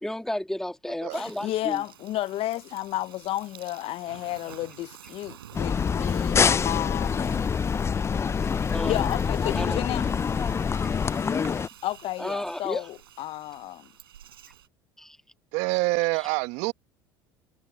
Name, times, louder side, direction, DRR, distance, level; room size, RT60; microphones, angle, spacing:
voice 1, 0.0-1.8 8.4-9.1 9.5-9.9 12.2-12.9 15.0-15.2, left 1 dB, 5° left, 2.0 m, -33 dB
voice 2, 1.1-7.4 8.8-10.1 11.8-13.9, left 15 dB, 55° left, 0.7 m, -32 dB
Insect, 1.1-14.7, right 11 dB, 85° right, 5.9 m, -50 dB
sound 1, 5.5-11.7, left 6 dB, 20° left, 0.3 m, -25 dB
voice 3, 15.5-16.7, right 26 dB, 65° right, 1.2 m, -26 dB
hypercardioid pair, 65°, 12 cm